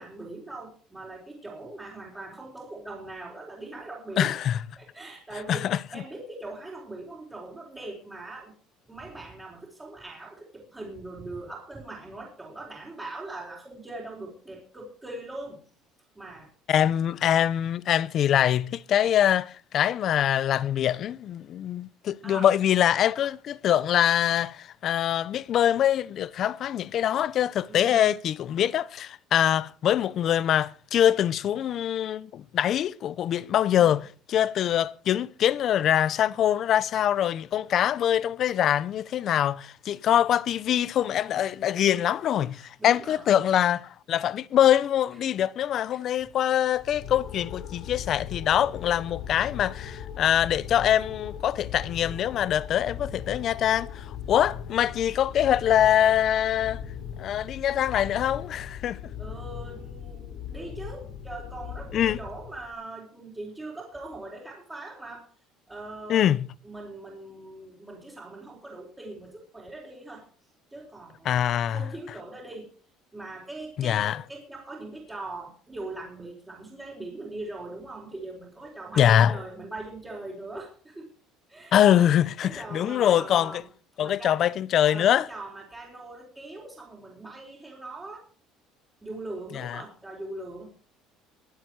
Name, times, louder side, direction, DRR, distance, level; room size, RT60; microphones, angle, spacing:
voice 1, 0.0-4.4 4.8-8.5 8.9-15.6 16.1-16.5 22.2-22.5 27.7-28.1 33.8-34.0 42.3-43.3 45.9-46.0 59.2-65.3 65.7-66.3 66.6-70.3 70.7-72.7 73.1-81.1 81.5-82.1 82.4-83.6 84.0-84.4 84.9-88.3 89.0-90.7, right 2 dB, 10° right, 4.4 m, -41 dB
voice 2, 4.2-4.6 5.5-5.8 16.7-56.8 57.2-59.0 61.9-62.2 66.1-66.5 71.2-71.8 73.8-74.2 79.0-79.4 81.7-83.6 84.0-85.3 89.5-89.8, left 10 dB, 45° left, 0.6 m, -24 dB
sound 1, 46.7-62.7, left 8 dB, 70° left, 4.6 m, -39 dB
23.0 x 8.2 x 4.7 m
cardioid pair, 150°, 0 cm